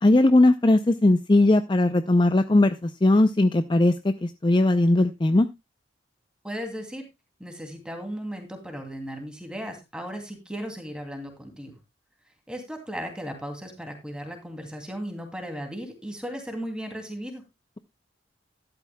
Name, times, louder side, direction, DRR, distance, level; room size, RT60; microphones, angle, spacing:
voice 1, 0.0-5.5, left 2 dB, 25° left, 10 dB, 0.5 m, -19 dB
voice 2, 6.4-7.1 7.4-11.8 12.5-17.4, equal, 5° right, 4 dB, 2.6 m, -36 dB
13.0 x 11.5 x 2.2 m, 0.23 s
head